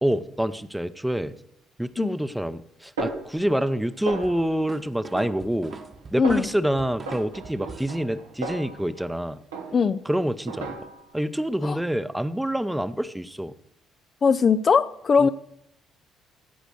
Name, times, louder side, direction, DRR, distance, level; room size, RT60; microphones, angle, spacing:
voice 1, 0.0-1.3 1.8-5.8 6.1-9.4 10.0-10.8 11.1-13.5 15.2-15.3, right 1 dB, 5° right, 13 dB, 0.7 m, -27 dB
Snare drum, 3.0-3.8 4.1-4.6 5.1-5.9 6.2-6.6 7.1-9.2 9.5-10.0 10.5-11.2, right 3 dB, 80° right, 1.1 m, -36 dB
sound 1, 4.2-8.0, right 3 dB, 40° right, 1.3 m, -43 dB
voice 2, 6.2-6.5 9.7-10.0 11.6-11.8 14.2-15.3, left 5 dB, 40° left, 12 dB, 0.4 m, -20 dB
15.0 x 5.1 x 6.3 m, 0.78 s
figure-of-eight pair, 45°, 0 cm